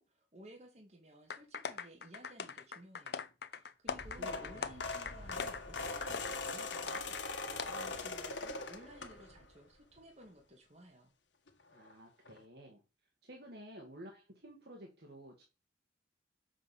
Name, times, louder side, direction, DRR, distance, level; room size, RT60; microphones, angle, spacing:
voice 1, 0.0-11.1, right 1 dB, 35° right, 1 dB, 2.0 m, -56 dB
sound 1, 1.3-7.2 7.6-7.7, left 5 dB, 60° left, 0.8 m, -42 dB
sound 2, 3.9-9.5 10.0-10.2 11.5-11.6 11.8-11.9 12.3-12.4, left 3 dB, 75° left, 1.6 m, -41 dB
voice 2, 3.9-4.8 11.7-12.8 13.2-15.4, equal, 55° right, 1 dB, 2.0 m, -52 dB
7.4 x 5.6 x 7.1 m, 0.29 s
head